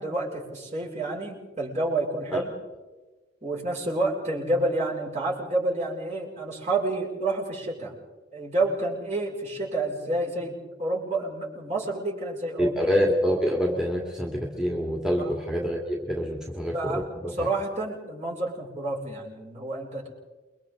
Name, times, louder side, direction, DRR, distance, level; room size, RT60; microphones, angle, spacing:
voice 1, 0.0-2.5 3.4-7.9 8.3-12.8 15.2-15.3 16.7-20.1, right 2 dB, 40° right, -4 dB, 6.6 m, -29 dB
voice 2, 12.6-17.5, equal, 5° right, -1 dB, 2.3 m, -26 dB
29.0 x 23.5 x 4.0 m, 1.2 s
head